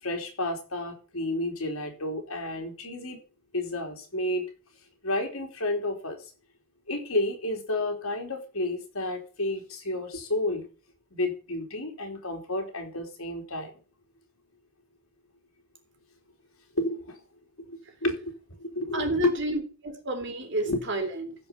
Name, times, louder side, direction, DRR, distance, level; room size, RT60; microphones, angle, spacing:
voice 1, 0.0-3.2 3.5-4.4 5.0-6.2 6.9-10.7 11.1-13.7 16.8-17.2 17.6-18.3 18.6-19.3 20.6-20.8, left 1 dB, 75° left, 3.4 m, -31 dB
voice 2, 18.9-21.3, right 2 dB, 55° right, 2.9 m, -31 dB
15.5 x 5.3 x 7.1 m
head